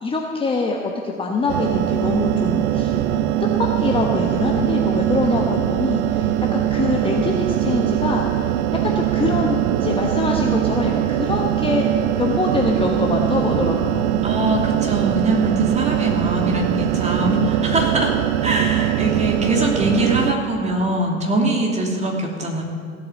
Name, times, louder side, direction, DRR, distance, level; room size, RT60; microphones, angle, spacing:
voice 1, 0.0-3.3 3.6-14.2 17.7-17.9, left 3 dB, 15° left, 0 dB, 1.2 m, -24 dB
sound 1, 1.5-20.3, right 12 dB, 50° right, 0.7 m, -21 dB
voice 2, 14.2-18.1 18.4-22.6, right 1 dB, 15° right, -1 dB, 2.8 m, -22 dB
16.0 x 8.5 x 7.4 m, 2.2 s
figure-of-eight pair, 85°, 41 cm